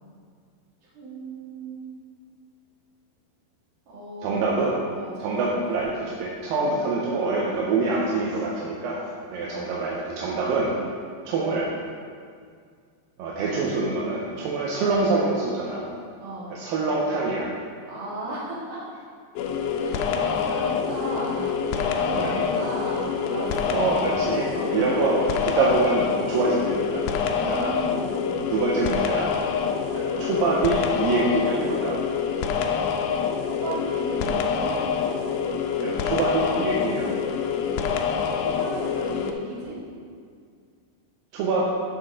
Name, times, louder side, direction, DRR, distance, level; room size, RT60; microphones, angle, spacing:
voice 1, 0.9-1.8 3.9-4.6 4.9-5.7 6.6-6.8 9.4-9.7 16.2-16.6 17.9-18.8 19.8-23.9 24.5-24.8 27.2-28.1 33.6-34.8 38.4-39.8, right 1 dB, 55° right, -8 dB, 3.7 m, -35 dB
voice 2, 4.2-4.8 5.2-9.0 9.3-10.7 11.3-11.7 13.2-15.9 16.5-17.5 22.1-22.4 23.7-27.0 27.5-27.7 28.5-29.3 29.9-32.0 35.8-37.1 41.3-41.7, right 3 dB, 75° right, -4 dB, 2.4 m, -25 dB
sound 1, 19.4-39.3, left 6 dB, 80° left, 2.3 m, -26 dB
14.0 x 5.1 x 3.7 m, 2.1 s
omnidirectional pair, 4.5 m